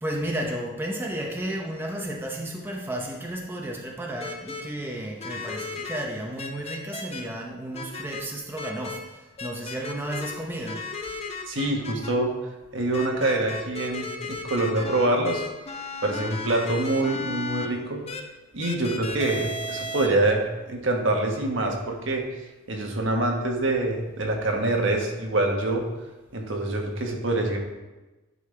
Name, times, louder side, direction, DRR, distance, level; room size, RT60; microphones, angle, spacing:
voice 1, 0.0-10.8, right 1 dB, 10° right, -1 dB, 0.7 m, -33 dB
sound 1, 4.2-4.6 5.2-6.0 6.4-7.2 7.7-8.2 8.6-9.0 9.4-10.3 10.6-12.1 12.9-17.7 18.1-18.2 18.6-20.1, left 3 dB, 30° left, 0.7 m, -34 dB
voice 2, 11.5-12.4 12.7-15.4 16.0-18.0 18.5-22.3 22.7-25.9 26.3-27.6, right 2 dB, 65° right, 1 dB, 1.3 m, -25 dB
11.0 x 5.4 x 3.3 m, 1.1 s
head